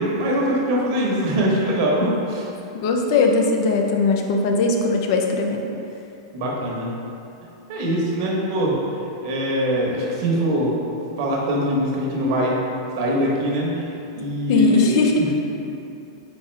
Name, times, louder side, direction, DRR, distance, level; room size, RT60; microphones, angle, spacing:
voice 1, 0.0-2.4 6.3-6.9 7.7-8.7 9.2-10.7 11.2-12.6 13.0-14.9 15.2-15.3, equal, 55° right, -3 dB, 1.0 m, -22 dB
voice 2, 2.8-5.6 14.5-15.3, left 3 dB, 60° left, 2 dB, 0.5 m, -19 dB
4.2 x 3.6 x 3.3 m, 2.8 s
hypercardioid pair, 115°, 2 cm